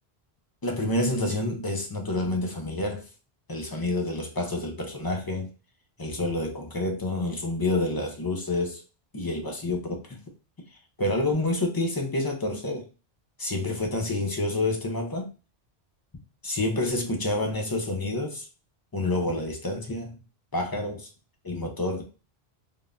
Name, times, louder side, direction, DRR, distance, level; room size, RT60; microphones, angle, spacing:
voice 1, 0.6-3.0 3.5-5.5 6.0-8.8 9.1-10.2 11.0-12.9 13.4-15.3 16.4-18.5 18.9-20.2 20.5-21.1 21.4-22.0, left 2 dB, 30° left, 0.4 m, -28 dB
3.6 x 2.1 x 2.4 m
omnidirectional pair, 1.1 m